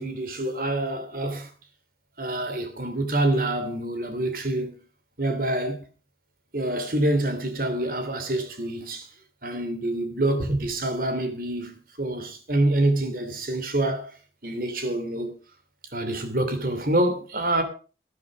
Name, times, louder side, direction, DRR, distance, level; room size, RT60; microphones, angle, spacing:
voice 1, 0.0-1.5 2.2-4.7 5.2-5.8 6.5-9.1 9.4-14.1 14.4-15.4 15.9-17.6, right 1 dB, 55° right, 2.8 m, -26 dB
13.0 x 11.0 x 5.0 m
head